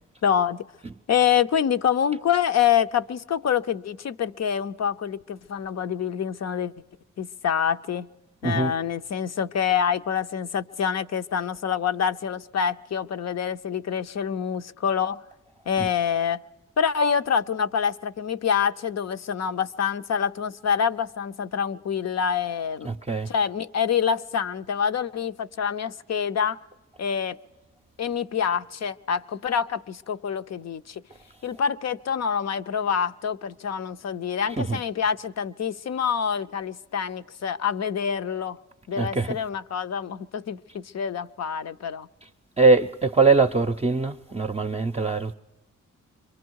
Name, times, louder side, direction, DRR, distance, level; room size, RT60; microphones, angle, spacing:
voice 1, 0.2-0.7 1.1-6.7 7.2-8.1 8.4-15.2 15.7-16.4 16.8-22.9 23.3-26.6 27.0-27.4 28.0-31.0 31.4-38.6 38.9-42.1, left 7 dB, 60° left, 0.7 m, -26 dB
voice 2, 8.4-8.7 22.8-23.3 34.6-34.8 39.0-39.4 42.6-45.3, right 4 dB, 20° right, 0.6 m, -22 dB
26.5 x 23.5 x 4.7 m
cardioid pair, 70°, 29 cm